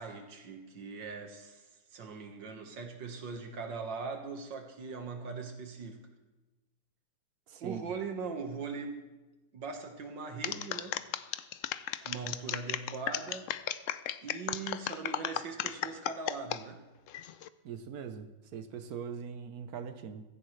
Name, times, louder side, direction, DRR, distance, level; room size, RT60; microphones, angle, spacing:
voice 1, 0.0-6.0 7.6-9.0 9.5-11.0 12.0-13.5 14.2-16.8, right 4 dB, 90° right, 4 dB, 2.2 m, -40 dB
voice 2, 7.5-7.8 17.6-20.2, right 7 dB, 60° right, 10 dB, 1.2 m, -41 dB
sound 1, 10.4-16.6 17.1-17.5, left 11 dB, 90° left, 0.6 m, -35 dB
16.0 x 15.0 x 3.3 m, 1.1 s
omnidirectional pair, 1.9 m